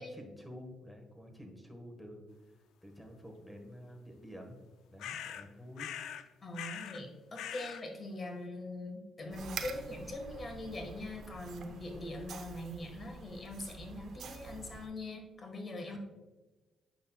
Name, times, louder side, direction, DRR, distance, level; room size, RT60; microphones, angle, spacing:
voice 1, 0.0-2.2 2.8-4.6 4.9-5.9 7.0-7.1 15.8-16.0, equal, 5° left, 3 dB, 1.4 m, -49 dB
sound 1, 5.0-5.5 5.8-6.3 6.5-7.0 7.3-7.8, left 10 dB, 80° left, 0.4 m, -42 dB
voice 2, 6.4-16.0, left 2 dB, 35° left, 3 dB, 1.5 m, -42 dB
sound 2, 9.3-14.9, right 5 dB, 65° right, 0.7 m, -47 dB
9.5 x 6.2 x 2.3 m, 1.2 s
cardioid pair, 90°, 0 cm